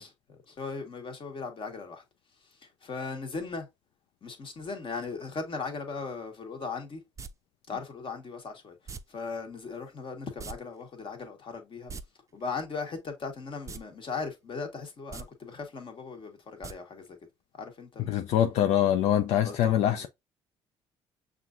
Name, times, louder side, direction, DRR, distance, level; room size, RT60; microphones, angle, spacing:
voice 1, 0.0-2.0 2.4-3.7 4.2-7.0 7.7-11.9 12.3-17.2 17.5-18.1 19.4-20.1, left 4 dB, 45° left, 1.4 m, -38 dB
sound 1, 7.2-7.3 8.9-9.0 10.4-10.6 10.8-10.9 11.7-12.0 13.6-13.8 14.2-14.3 15.0-15.2 16.6-16.7 17.1-17.2, right 5 dB, 25° right, 0.5 m, -40 dB
voice 2, 18.0-20.1, left 11 dB, 70° left, 0.4 m, -24 dB
5.8 x 2.5 x 2.5 m
supercardioid pair, 70°, 12 cm